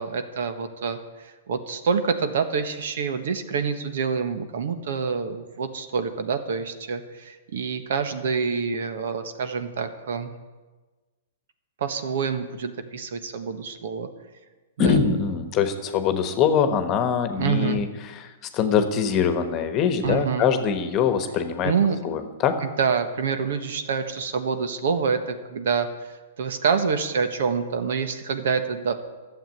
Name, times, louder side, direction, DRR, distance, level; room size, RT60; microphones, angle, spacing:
voice 1, 0.0-10.3 11.8-14.1 14.8-15.0 17.4-17.8 20.0-20.5 21.6-22.0 22.6-25.9 26.4-28.9, right 5 dB, 70° right, 9 dB, 1.4 m, -26 dB
voice 2, 14.8-17.9 18.2-18.3 18.5-21.7 22.0-22.6, left 7 dB, 30° left, 9 dB, 1.3 m, -23 dB
12.0 x 7.4 x 9.4 m, 1.3 s
hypercardioid pair, 145°, 0 cm